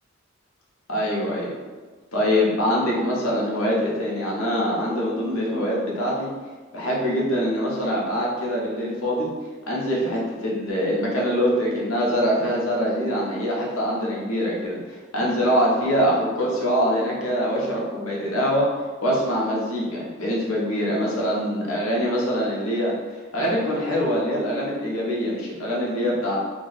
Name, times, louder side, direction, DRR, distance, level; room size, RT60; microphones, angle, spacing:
voice 1, 0.9-1.5 2.1-6.3 6.7-9.3 9.7-18.7 19.0-22.9 23.3-26.4, equal, 85° left, -4 dB, 0.9 m, -24 dB
2.6 x 2.3 x 3.9 m, 1.4 s
head